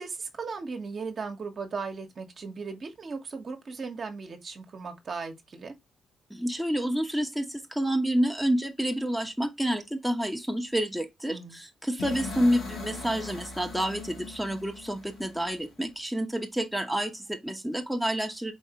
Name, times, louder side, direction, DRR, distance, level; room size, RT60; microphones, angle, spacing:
voice 1, 0.0-5.7 11.3-11.6, right 4 dB, 50° right, 1.1 m, -37 dB
voice 2, 6.3-18.5, equal, ahead, 1.0 m, -29 dB
sound 1, 12.0-15.9, left 4 dB, 80° left, 2.4 m, -40 dB
4.4 x 3.1 x 2.9 m
supercardioid pair, 55°, 0 cm